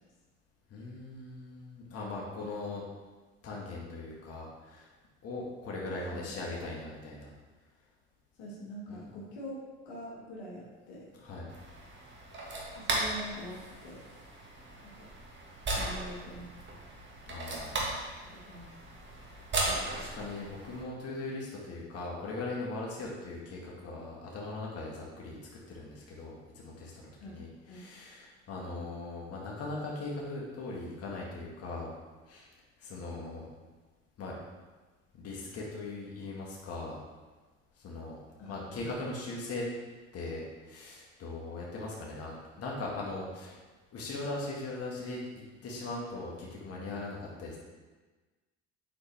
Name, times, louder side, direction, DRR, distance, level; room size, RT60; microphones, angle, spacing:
voice 1, 0.7-2.8 3.4-4.9 5.2-7.3 8.9-9.0 11.2-11.5 17.3-18.1 19.1-19.3 19.6-25.4 25.7-31.9 32.3-32.5 32.8-33.5 34.2-34.4 35.1-37.0 37.8-39.7 40.1-43.6 43.9-45.2 45.6-47.6, left 2 dB, 50° left, -3 dB, 1.7 m, -40 dB
voice 2, 8.4-9.6 9.9-11.1 12.7-14.0 14.8-15.1 15.7-16.5 18.3-18.7 27.2-27.3 27.7-27.9 38.4-38.9, equal, 75° left, -4 dB, 1.8 m, -44 dB
sound 1, 11.5-20.8, right 2 dB, 35° right, 1.7 m, -37 dB
7.8 x 4.4 x 3.4 m, 1.3 s
supercardioid pair, 80°, 31 cm